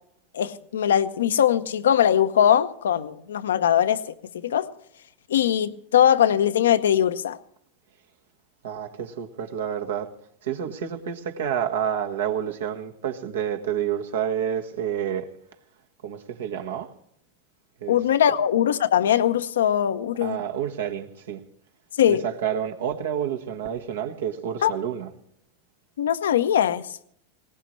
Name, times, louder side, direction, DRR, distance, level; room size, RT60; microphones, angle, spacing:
voice 1, 0.3-4.0 4.3-4.7 5.3-7.4 17.9-20.4 22.0-22.2 24.6-24.7 26.0-26.8, left 10 dB, 80° left, 0.8 m, -21 dB
voice 2, 8.6-10.1 10.4-15.3 16.0-16.9 17.8-18.0 20.2-21.4 22.1-25.1, right 9 dB, 75° right, 1.5 m, -29 dB
19.5 x 18.5 x 3.2 m
hypercardioid pair, 100°, 0 cm